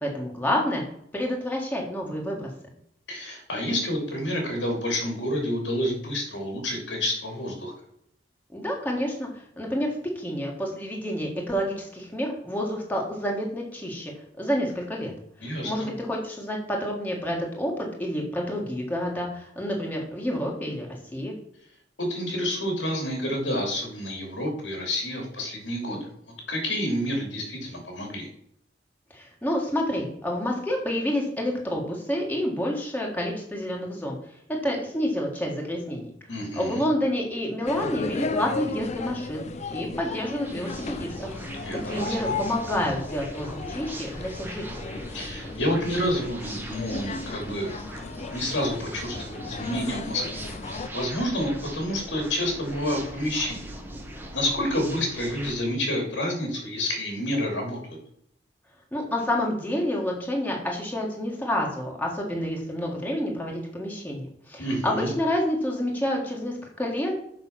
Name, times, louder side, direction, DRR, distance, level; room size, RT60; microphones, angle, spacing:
voice 1, 0.0-0.8 1.1-2.5 8.5-9.3 9.6-14.1 14.4-15.1 15.4-21.3 29.1-34.2 34.6-36.1 36.5-39.4 39.7-41.3 41.8-44.9 58.9-67.1, equal, 10° left, -1 dB, 1.7 m, -29 dB
voice 2, 3.1-7.7 15.4-15.7 22.0-26.1 26.5-28.3 36.3-36.8 41.6-42.3 45.1-47.8 48.3-50.4 50.7-53.7 54.3-58.0 64.6-65.1, left 1 dB, 80° left, 2 dB, 2.8 m, -29 dB
sound 1, 37.7-50.9, left 4 dB, 40° left, 0.5 m, -35 dB
sound 2, 40.4-55.5, right 1 dB, 10° right, 1.3 m, -40 dB
6.6 x 5.9 x 5.8 m, 0.71 s
head